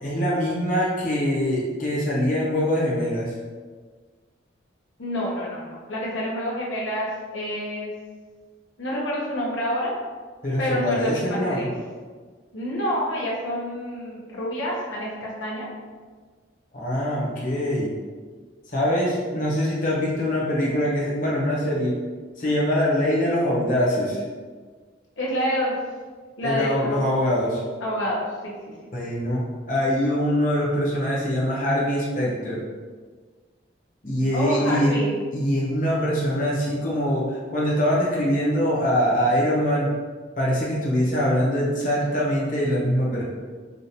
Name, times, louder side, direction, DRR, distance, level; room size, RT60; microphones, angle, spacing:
voice 1, 0.0-3.3 10.4-11.7 16.7-17.9 18.7-21.9 22.4-24.2 26.4-27.6 28.9-32.6 34.0-39.9 40.4-43.2, equal, 45° left, -6 dB, 1.0 m, -23 dB
voice 2, 5.0-7.9 8.8-9.9 10.6-11.7 12.5-15.7 25.2-25.7 26.4-27.0 27.8-28.5 34.3-35.2, equal, 80° left, -5 dB, 0.8 m, -28 dB
4.9 x 2.4 x 2.8 m, 1.5 s
head